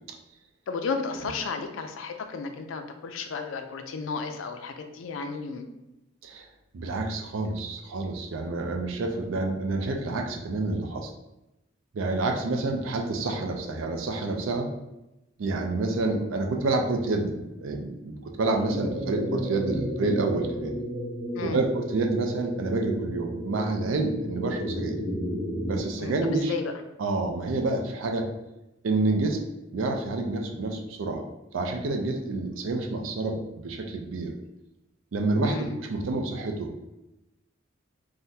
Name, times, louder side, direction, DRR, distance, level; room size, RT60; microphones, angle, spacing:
voice 1, 0.7-5.7 21.4-21.6 26.0-26.7 35.4-35.8, left 4 dB, 75° left, 6 dB, 0.4 m, -33 dB
voice 2, 6.7-11.1 11.9-14.7 15.4-20.7 21.4-24.9 25.7-26.5 27.0-28.3 28.8-29.4 29.7-31.2 31.5-34.3 35.1-35.6 35.9-36.9, right 2 dB, 80° right, 3 dB, 0.4 m, -28 dB
sound 1, 18.7-25.8, equal, 5° right, 0.4 m, -33 dB
3.6 x 2.1 x 2.7 m, 0.94 s
head